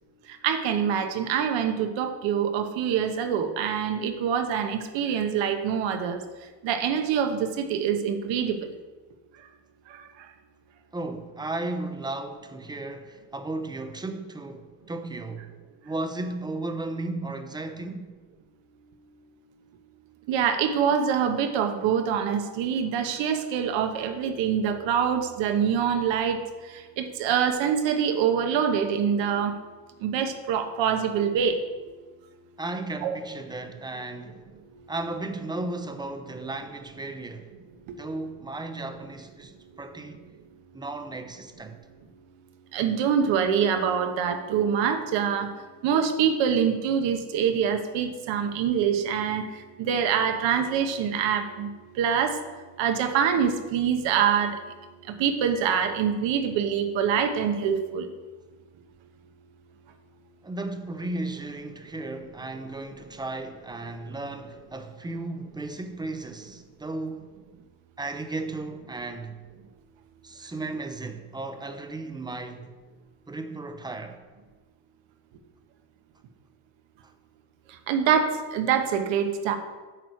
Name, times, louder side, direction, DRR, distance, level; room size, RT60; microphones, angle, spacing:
voice 1, 0.4-6.2 6.6-8.6 20.3-26.4 27.0-29.5 30.0-31.6 33.0-33.2 37.9-38.0 42.7-45.5 45.8-49.4 49.8-51.7 52.0-52.4 52.8-54.6 55.1-58.1 77.9-79.6, right 7 dB, 70° right, 1.1 m, -25 dB
voice 2, 10.9-15.5 15.8-18.1 32.6-34.4 34.9-37.5 38.0-40.2 40.7-41.8 60.4-67.3 68.0-69.4 70.2-72.7 73.3-74.2, right 2 dB, 10° right, 0.6 m, -35 dB
8.9 x 6.3 x 4.7 m
cardioid pair, 115°, 46 cm